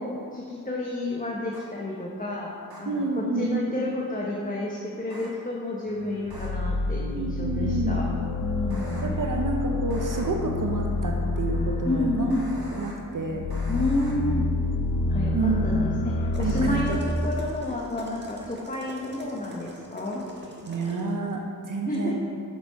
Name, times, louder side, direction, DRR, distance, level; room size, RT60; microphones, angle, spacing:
voice 1, 0.0-2.5 2.8-8.1 8.4-9.0 11.8-12.5 13.7-14.5 15.1-20.5 21.9-22.2, left 1 dB, 20° left, -3 dB, 1.0 m, -30 dB
sound 1, 1.5-1.6 2.7-2.8 5.1-5.3 6.3-6.5 8.7-9.0 9.9-10.2 12.3-12.9 13.5-14.1, right 1 dB, 80° right, 1.7 m, -43 dB
voice 2, 2.9-3.7 7.0-8.0 9.0-12.3 12.7-13.5 15.3-15.8 16.4-17.0 20.7-22.2, right 3 dB, 60° right, 1 dB, 0.8 m, -29 dB
sound 2, 6.3-17.0, left 2 dB, 70° left, 0.8 m, -28 dB
sound 3, 16.3-21.1, right 1 dB, 30° right, 1.4 m, -44 dB
7.3 x 6.4 x 4.7 m, 2.3 s
cardioid pair, 60°, 37 cm